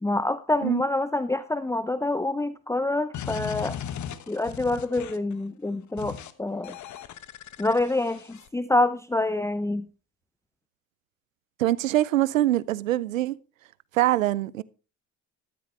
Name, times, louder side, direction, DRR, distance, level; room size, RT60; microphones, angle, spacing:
voice 1, 0.0-3.8 4.3-6.8 7.6-9.9, left 2 dB, 5° left, 0.7 m, -26 dB
sound 1, 3.1-5.3 6.0-6.3 6.6-8.5, left 9 dB, 50° left, 1.2 m, -37 dB
voice 2, 11.6-13.4 13.9-14.6, right 14 dB, 90° right, 0.6 m, -23 dB
13.5 x 12.0 x 3.2 m
hypercardioid pair, 55°, 38 cm